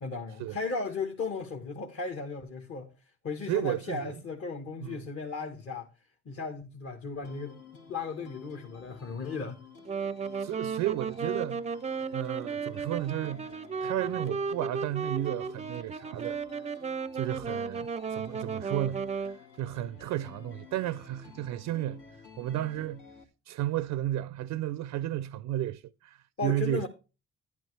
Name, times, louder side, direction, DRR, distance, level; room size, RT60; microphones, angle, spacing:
voice 1, 0.0-2.9 3.2-5.9 6.2-7.5 7.9-9.6 26.4-26.9, left 4 dB, 50° left, 1.4 m, -35 dB
voice 2, 3.5-4.1 4.8-5.0 10.4-11.6 12.1-16.4 17.1-22.0 22.4-23.0 23.5-26.9, right 13 dB, 85° right, 0.5 m, -33 dB
sound 1, 7.2-23.2, left 6 dB, 85° left, 2.1 m, -52 dB
Wind instrument woodwind instrument, 9.9-19.4, right 5 dB, 25° right, 0.4 m, -34 dB
11.0 x 9.2 x 3.2 m
cardioid pair, 90°, 30 cm